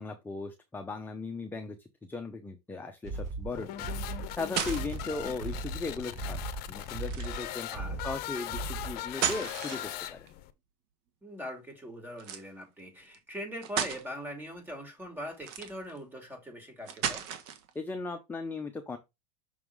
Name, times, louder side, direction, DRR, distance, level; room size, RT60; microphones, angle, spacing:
voice 1, 0.0-3.9 4.4-7.7 8.0-9.8 10.1-10.3 17.7-19.0, left 3 dB, 10° left, 0.7 m, -37 dB
sound 1, 3.0-9.1, right 3 dB, 35° right, 1.9 m, -38 dB
sound 2, 3.5-10.5, left 13 dB, 50° left, 0.8 m, -39 dB
sound 3, 4.1-5.1 7.0-7.5 8.9-10.3 12.2-12.5 13.1-13.2 13.6-14.0 15.3-16.0 16.9-17.7, right 9 dB, 55° right, 1.4 m, -34 dB
voice 2, 5.0-5.3 7.7-8.0 11.2-17.3, equal, 10° right, 2.4 m, -42 dB
6.2 x 3.6 x 4.7 m
supercardioid pair, 115°, 20 cm